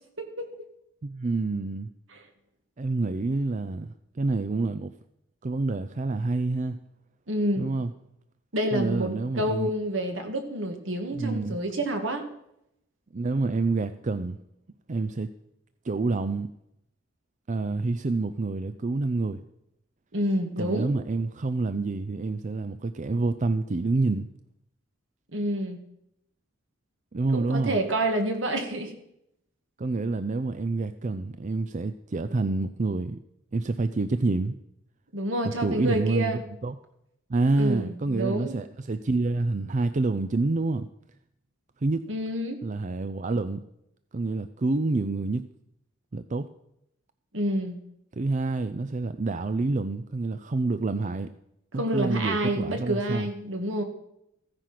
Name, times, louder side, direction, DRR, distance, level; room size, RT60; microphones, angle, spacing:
voice 1, 0.2-0.5 7.3-7.7 8.5-12.3 20.1-20.9 25.3-25.8 27.3-28.9 35.1-36.4 37.6-38.6 42.1-42.6 47.3-47.8 51.8-53.8, right 1 dB, 70° right, 2.1 m, -28 dB
voice 2, 1.0-1.9 2.8-4.9 5.4-6.8 7.6-7.9 8.7-9.7 11.1-11.6 13.1-14.4 14.9-15.3 15.8-16.5 17.5-19.4 20.6-24.3 27.1-27.8 29.8-33.2 33.5-34.5 35.4-36.8 37.3-40.9 41.8-42.1 42.6-43.6 44.1-45.4 46.1-46.5 48.1-51.3 51.7-53.3, right 3 dB, 40° right, 0.5 m, -27 dB
15.0 x 9.8 x 5.9 m
head